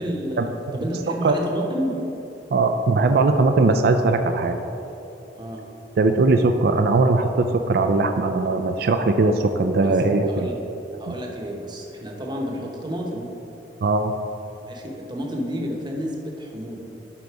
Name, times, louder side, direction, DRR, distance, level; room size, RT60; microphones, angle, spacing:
voice 1, 0.0-2.0 5.3-5.6 9.8-9.9 10.3-10.6 11.0-13.3 14.7-16.8, equal, 25° right, 0 dB, 0.9 m, -30 dB
voice 2, 2.5-4.6 6.0-10.5 13.8-14.1, right 3 dB, 60° right, 7 dB, 0.4 m, -19 dB
11.5 x 3.9 x 4.7 m, 2.9 s
head